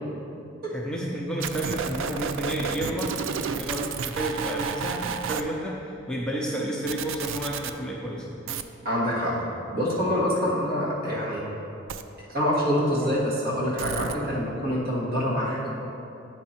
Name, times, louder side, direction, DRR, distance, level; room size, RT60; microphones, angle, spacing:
voice 1, 0.7-3.2 3.5-8.3 12.9-13.1, right 1 dB, 5° left, -4 dB, 0.6 m, -31 dB
sound 1, 1.4-5.4 6.9-7.7 8.5-8.6 11.9-12.0 13.8-14.2, right 6 dB, 80° right, 0.4 m, -31 dB
voice 2, 8.8-9.3 9.7-11.4 12.2-15.7, equal, 50° right, -5 dB, 1.8 m, -26 dB
9.6 x 4.6 x 4.3 m, 2.7 s
head